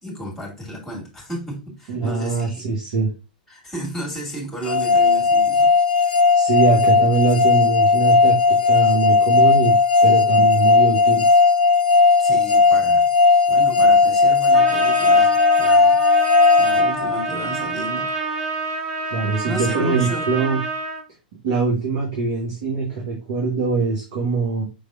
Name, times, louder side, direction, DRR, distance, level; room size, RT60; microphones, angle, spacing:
voice 1, 0.0-2.6 3.5-5.7 12.2-13.1 13.5-16.0 16.5-18.1 19.4-20.2, right 1 dB, 5° left, 2.2 m, -33 dB
voice 2, 1.9-3.1 6.3-9.8 10.0-11.2 19.1-20.6 21.4-24.6, right 4 dB, 50° right, 1.7 m, -22 dB
sound 1, 4.7-17.6, left 4 dB, 80° left, 0.6 m, -16 dB
Trumpet, 14.5-21.0, right 3 dB, 30° right, 2.1 m, -27 dB
5.5 x 3.4 x 2.5 m
figure-of-eight pair, 100°, 5 cm